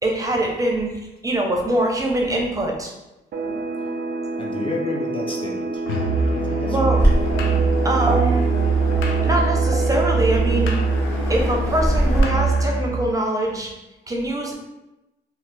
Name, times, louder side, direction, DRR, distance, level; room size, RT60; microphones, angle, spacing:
voice 1, 0.0-0.9 1.2-2.9 6.7-7.0 7.8-8.4 9.2-10.7 11.3-13.7 14.1-14.5, right 1 dB, 15° right, 0 dB, 0.6 m, -23 dB
sound 1, 3.3-12.6, right 3 dB, 55° right, 0.5 m, -29 dB
voice 2, 4.4-5.8 6.3-7.0, left 2 dB, 25° left, -1 dB, 0.5 m, -31 dB
Musical instrument, 5.9-13.0, right 3 dB, 90° left, 0.5 m, -22 dB
Waves surf, 7.0-12.2, equal, 10° left, 1.0 m, -26 dB
2.8 x 2.3 x 3.3 m, 0.98 s
cardioid pair, 90°, 20 cm